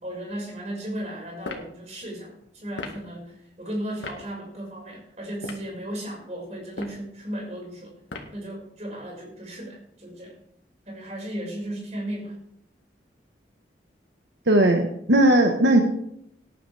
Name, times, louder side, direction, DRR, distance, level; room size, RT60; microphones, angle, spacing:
voice 1, 0.0-7.9 8.3-10.3 10.9-12.4, right 1 dB, 40° right, -1 dB, 5.8 m, -35 dB
sound 1, 1.4-1.7 2.7-3.0 4.0-4.2 5.3-5.7 6.6-7.0 8.1-8.4, left 2 dB, 90° left, 1.9 m, -36 dB
voice 2, 14.5-15.8, right 1 dB, 80° right, 2 dB, 1.5 m, -18 dB
18.0 x 11.0 x 3.6 m, 0.72 s
head